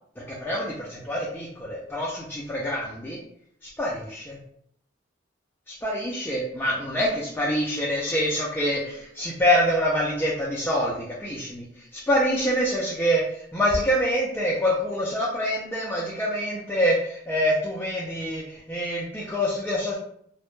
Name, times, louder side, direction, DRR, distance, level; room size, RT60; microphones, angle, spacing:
voice 1, 0.3-3.2 3.6-4.4 5.7-20.0, equal, 10° left, -5 dB, 0.3 m, -26 dB
2.1 x 2.0 x 3.0 m, 0.69 s
head